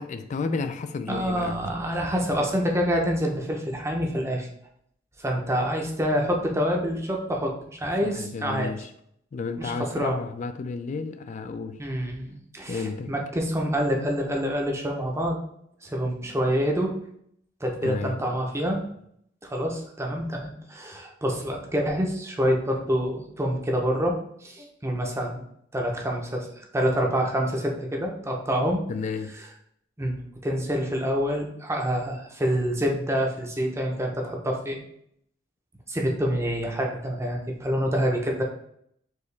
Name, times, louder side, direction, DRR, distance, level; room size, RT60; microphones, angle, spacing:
voice 1, 0.0-1.6 8.0-8.9 9.3-11.8 12.7-13.1 17.8-18.2 28.9-29.3, left 4 dB, 40° left, 0.3 m, -32 dB
voice 2, 1.1-4.5 5.2-8.7 9.6-10.2 11.8-15.4 15.8-16.9 17.6-18.8 19.4-25.4 25.7-28.8 30.0-30.2 30.4-34.8 35.9-38.4, equal, 15° right, 0.7 m, -27 dB
4.6 x 3.0 x 3.2 m
head